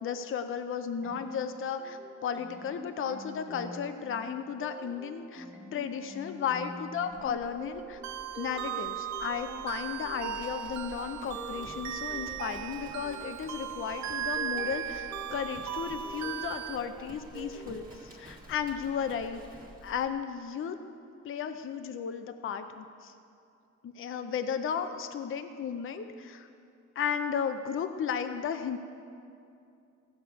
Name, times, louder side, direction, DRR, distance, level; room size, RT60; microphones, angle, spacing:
voice 1, 0.0-5.5 5.7-8.0 8.4-19.4 19.8-20.8 21.2-23.1 23.8-26.5 27.0-28.8, left 7 dB, 45° left, 8 dB, 0.6 m, -34 dB
sound 1, 1.0-18.1, right 1 dB, 5° right, 1.1 m, -47 dB
Livestock farm animals working animals, 7.1-20.1, right 2 dB, 30° right, 1.6 m, -51 dB
sound 2, 8.0-16.8, right 9 dB, 65° right, 0.6 m, -37 dB
15.5 x 6.3 x 5.0 m, 2.5 s
cardioid pair, 90°, 30 cm